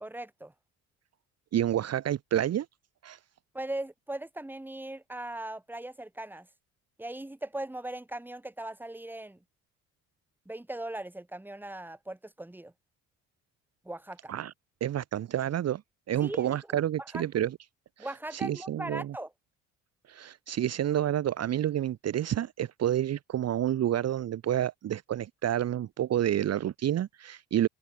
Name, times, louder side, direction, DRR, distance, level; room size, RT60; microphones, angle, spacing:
voice 1, 0.0-0.5 3.5-6.5 7.0-9.4 10.4-12.7 13.8-14.3 16.2-16.6 17.0-17.2 18.0-19.3, right 1 dB, 5° right, 1.6 m, -39 dB
voice 2, 1.5-2.7 3.0-3.2 14.3-14.5 14.8-15.8 16.1-17.6 18.0-18.1 18.4-19.1 20.1-27.7, right 11 dB, 45° right, 0.9 m, -29 dB
open air
hypercardioid pair, 55°, 35 cm